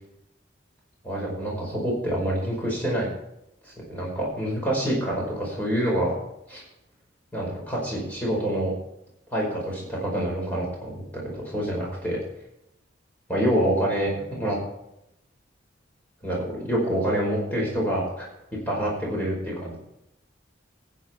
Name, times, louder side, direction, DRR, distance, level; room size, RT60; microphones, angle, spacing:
voice 1, 1.0-3.1 3.7-6.1 6.5-6.6 7.3-8.7 9.3-12.2 13.3-14.6 16.2-18.3 18.7-19.8, right 1 dB, 10° left, -4 dB, 5.2 m, -27 dB
15.0 x 9.3 x 4.6 m, 0.83 s
head